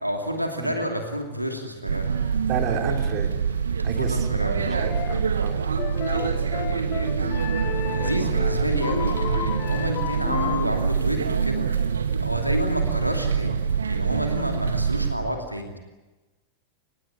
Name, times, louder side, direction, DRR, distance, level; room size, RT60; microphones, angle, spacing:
voice 1, 0.0-2.1 4.0-4.8 6.1-11.7 12.2-13.6 13.9-15.8, equal, 90° right, 4 dB, 2.6 m, -30 dB
sound 1, 1.8-15.2, right 6 dB, 70° right, 2.3 m, -25 dB
voice 2, 2.5-3.3 3.8-5.6, right 6 dB, 40° right, 4 dB, 3.3 m, -31 dB
sound 2, 4.9-5.3 5.8-10.7, left 14 dB, 40° left, 1.2 m, -33 dB
25.5 x 20.0 x 9.0 m, 1.1 s
figure-of-eight pair, 90°, 0 cm